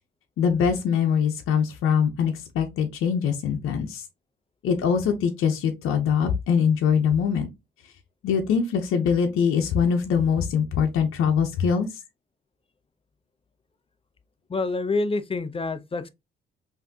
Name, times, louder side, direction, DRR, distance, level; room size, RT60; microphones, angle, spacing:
voice 1, 0.4-4.0 4.6-7.5 8.2-12.0, left 7 dB, 85° left, 0.7 m, -23 dB
voice 2, 14.5-16.1, left 3 dB, 25° left, 0.6 m, -27 dB
5.6 x 2.7 x 2.7 m
cardioid pair, 80°, 21 cm